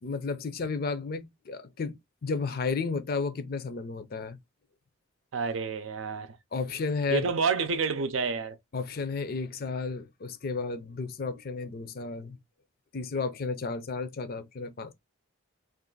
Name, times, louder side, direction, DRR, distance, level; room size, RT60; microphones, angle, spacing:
voice 1, 0.0-4.4 6.5-7.2 8.7-12.4 12.9-14.9, left 4 dB, 50° left, 0.5 m, -33 dB
voice 2, 5.3-6.4 7.1-8.6, right 5 dB, 80° right, 0.5 m, -29 dB
2.5 x 2.4 x 3.7 m
head